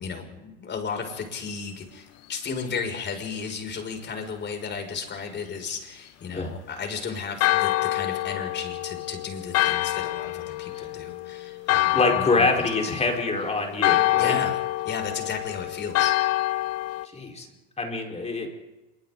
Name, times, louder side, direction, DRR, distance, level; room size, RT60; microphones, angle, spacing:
voice 1, 0.0-12.5 14.1-14.6 14.8-16.1, left 5 dB, 40° left, 4 dB, 6.6 m, -34 dB
Church bell, 7.4-17.1, left 17 dB, 55° left, 1.1 m, -26 dB
voice 2, 11.9-14.3 17.1-17.5 17.8-18.5, left 3 dB, 20° left, 1 dB, 4.8 m, -25 dB
27.5 x 24.0 x 4.1 m, 1.0 s
supercardioid pair, 90°, 29 cm